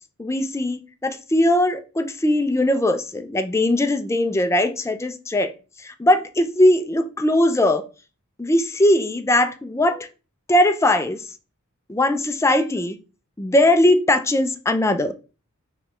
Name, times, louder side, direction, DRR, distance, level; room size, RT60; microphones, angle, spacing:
voice 1, 0.2-5.5 5.8-7.9 8.4-10.1 10.5-11.2 11.9-13.0 13.4-15.1, left 1 dB, 15° left, 0.4 m, -20 dB
5.3 x 3.2 x 3.0 m
head